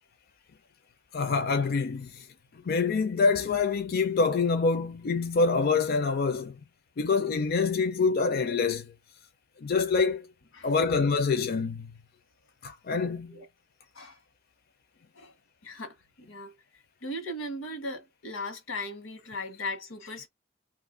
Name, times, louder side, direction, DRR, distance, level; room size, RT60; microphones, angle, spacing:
voice 1, 1.1-2.3 2.5-6.6 7.0-8.9 9.6-10.3 10.6-11.9 12.6-13.4, left 4 dB, 50° left, 0.4 m, -26 dB
voice 2, 15.6-16.6 17.0-20.3, left 1 dB, 90° left, 1.1 m, -38 dB
2.7 x 2.5 x 3.7 m
head